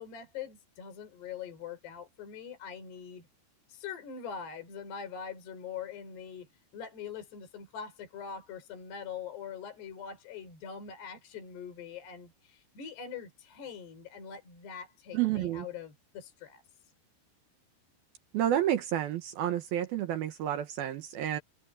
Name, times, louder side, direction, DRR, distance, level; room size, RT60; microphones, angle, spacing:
voice 1, 0.0-3.2 3.7-16.6, left 7 dB, 65° left, 6.8 m, -43 dB
voice 2, 15.1-15.7 18.3-21.4, right 11 dB, 70° right, 2.6 m, -30 dB
omnidirectional pair, 5.2 m